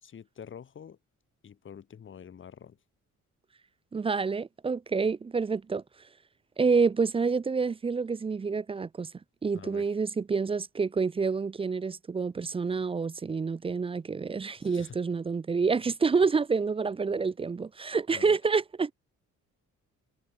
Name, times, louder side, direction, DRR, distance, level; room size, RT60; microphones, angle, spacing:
voice 1, 0.0-1.0 1.4-2.8 9.5-9.8 14.6-15.0 18.1-18.4, left 8 dB, 40° left, 1.2 m, -47 dB
voice 2, 3.9-5.8 6.6-9.1 9.4-18.9, right 5 dB, 20° right, 0.4 m, -28 dB
cardioid pair, 90°, 30 cm